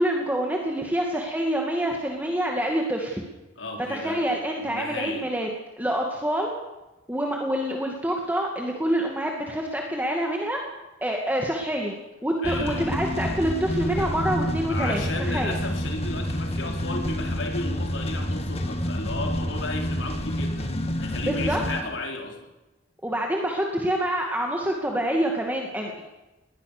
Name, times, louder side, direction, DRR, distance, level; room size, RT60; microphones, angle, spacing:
voice 1, 0.0-3.2 3.9-5.5 5.8-6.5 7.1-10.6 11.0-12.0 12.2-15.6 21.2-21.6 23.0-26.0, right 1 dB, 10° right, 0 dB, 2.4 m, -26 dB
voice 2, 3.6-4.3 4.6-5.2 12.4-13.0 13.9-14.1 14.7-20.7 21.0-22.5, left 2 dB, 75° left, 2 dB, 4.6 m, -34 dB
sound 1, 12.4-21.8, equal, 35° left, 2.4 m, -28 dB
20.5 x 20.5 x 6.9 m, 1.0 s
head